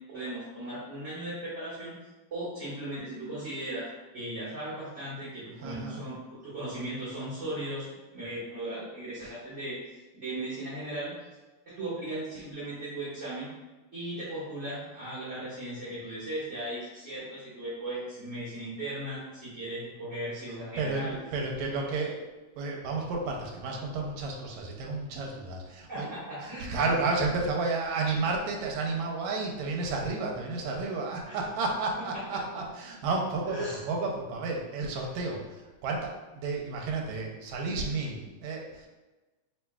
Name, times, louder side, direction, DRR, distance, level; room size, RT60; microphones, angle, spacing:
voice 1, 0.1-2.0 2.3-3.9 4.1-9.8 10.1-11.1 11.6-13.5 13.9-21.2 25.9-26.8 31.3-31.4 32.1-32.4 33.5-33.8, right 1 dB, 35° right, -13 dB, 1.2 m, -37 dB
voice 2, 5.6-6.0 20.8-22.2 22.6-26.1 26.4-38.9, right 3 dB, 80° right, 0 dB, 1.9 m, -32 dB
4.4 x 4.4 x 2.3 m, 1.2 s
omnidirectional pair, 3.4 m